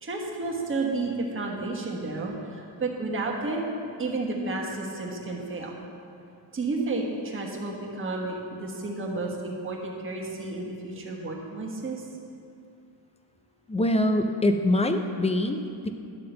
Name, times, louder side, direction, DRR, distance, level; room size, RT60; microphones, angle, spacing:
voice 1, 0.0-3.6 4.0-5.7 6.5-12.0, right 3 dB, 30° right, -1 dB, 1.3 m, -31 dB
voice 2, 13.7-15.9, left 1 dB, 15° left, 7 dB, 0.3 m, -24 dB
11.0 x 3.8 x 6.7 m, 2.6 s
cardioid pair, 120°, 44 cm